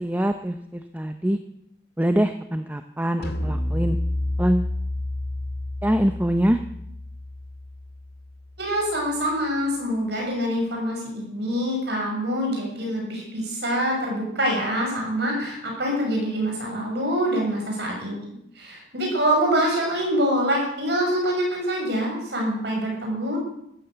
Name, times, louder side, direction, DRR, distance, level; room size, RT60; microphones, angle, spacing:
voice 1, 0.0-1.4 2.0-4.0 4.4-4.7 5.8-6.6, equal, 10° right, 8 dB, 0.7 m, -24 dB
sound 1, 3.2-8.6, left 1 dB, 55° left, 2.0 m, -30 dB
voice 2, 8.6-23.4, equal, 60° right, 0 dB, 6.7 m, -25 dB
14.0 x 13.0 x 8.0 m, 0.77 s
head